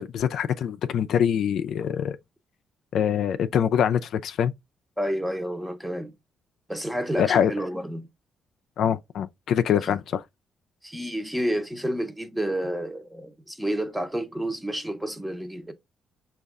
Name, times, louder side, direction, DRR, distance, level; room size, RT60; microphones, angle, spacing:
voice 1, 0.0-2.2 2.9-4.5 7.2-7.5 8.8-10.2, left 8 dB, 70° left, 0.3 m, -24 dB
voice 2, 5.0-6.1 6.7-8.1 9.8-9.9 10.8-15.7, equal, 5° right, 0.8 m, -30 dB
5.2 x 2.4 x 3.5 m
cardioid pair, 90°, 0 cm